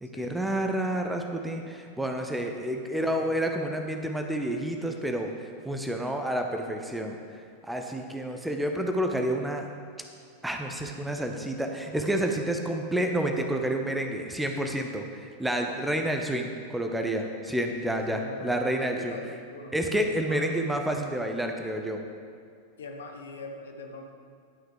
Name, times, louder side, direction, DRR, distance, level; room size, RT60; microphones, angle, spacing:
voice 1, 0.0-7.4 7.6-9.7 10.4-19.4 19.7-22.1, right 1 dB, 5° right, 3 dB, 0.8 m, -29 dB
voice 2, 2.9-3.3 17.6-20.4 22.8-24.1, left 2 dB, 65° left, 3 dB, 1.0 m, -42 dB
11.0 x 6.1 x 4.8 m, 2.2 s
figure-of-eight pair, 90°, 0 cm